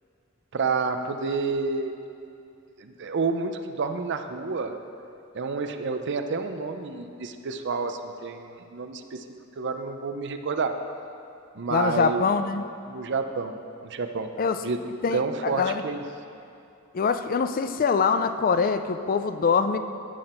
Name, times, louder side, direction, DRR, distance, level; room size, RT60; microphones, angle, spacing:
voice 1, 0.5-1.9 2.8-4.8 5.3-9.2 9.6-10.8 11.5-12.3 12.9-14.3 14.6-14.8 15.1-16.0, right 4 dB, 55° right, 7 dB, 0.5 m, -29 dB
voice 2, 11.7-12.7 14.4-14.6 15.0-15.8 16.9-19.8, left 5 dB, 45° left, 10 dB, 0.4 m, -24 dB
14.0 x 6.0 x 4.3 m, 2.6 s
head